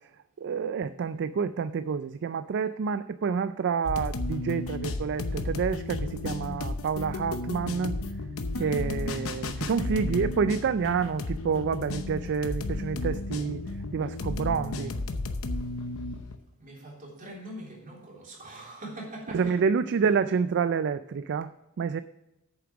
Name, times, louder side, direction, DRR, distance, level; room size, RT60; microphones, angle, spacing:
voice 1, 0.4-8.0 8.6-13.6 13.9-14.9 19.3-21.5 21.8-22.0, right 6 dB, 55° right, 13 dB, 0.4 m, -28 dB
sound 1, 3.8-16.4, left 2 dB, 65° left, 0.8 m, -33 dB
voice 2, 8.4-8.8 16.6-19.6, right 1 dB, 40° right, -2 dB, 3.2 m, -43 dB
8.6 x 7.0 x 6.0 m, 0.90 s
head